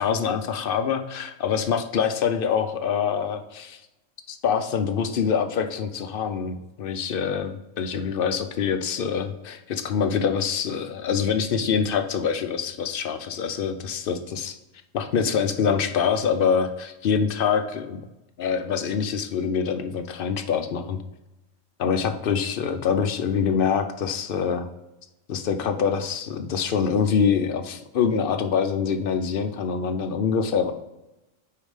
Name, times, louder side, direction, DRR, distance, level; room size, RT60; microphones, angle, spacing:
voice 1, 0.0-3.8 4.3-14.6 14.9-18.1 18.4-21.0 21.8-24.7 25.3-30.7, left 6 dB, 60° left, 8 dB, 0.6 m, -25 dB
5.3 x 4.6 x 4.8 m, 0.95 s
omnidirectional pair, 1.3 m